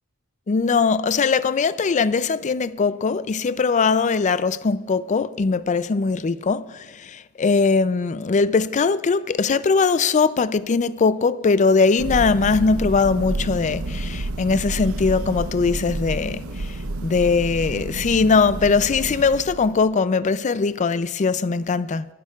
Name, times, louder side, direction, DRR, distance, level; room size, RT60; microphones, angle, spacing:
voice 1, 0.5-16.7 17.0-22.0, left 4 dB, 35° left, 0.4 m, -20 dB
Thunder, 12.0-19.9, right 2 dB, 80° right, 0.8 m, -30 dB
26.5 x 11.5 x 2.4 m
head